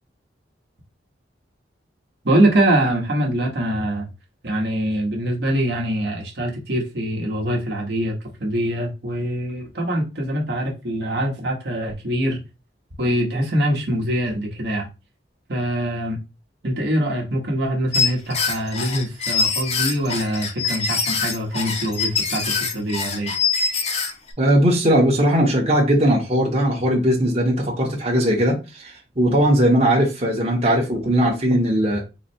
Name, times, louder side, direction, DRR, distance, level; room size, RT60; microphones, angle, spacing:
voice 1, 2.2-4.1 4.4-8.1 8.4-12.4 13.0-14.9 15.5-16.2 16.6-23.3, right 1 dB, 60° right, 1.1 m, -23 dB
sound 1, 17.9-24.3, left 5 dB, 35° left, 0.6 m, -24 dB
voice 2, 24.4-32.0, right 1 dB, 35° right, 1.0 m, -19 dB
4.0 x 2.1 x 4.2 m
head